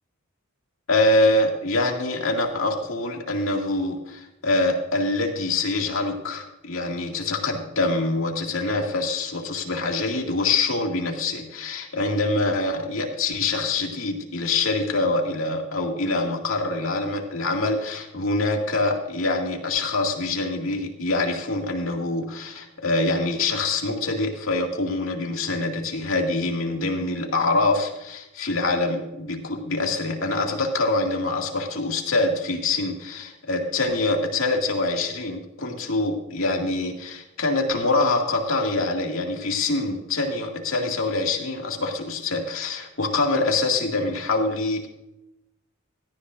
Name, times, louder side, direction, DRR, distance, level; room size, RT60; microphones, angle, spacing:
voice 1, 0.9-44.9, left 2 dB, 70° left, 1 dB, 2.2 m, -25 dB
17.0 x 13.5 x 2.6 m, 0.91 s
head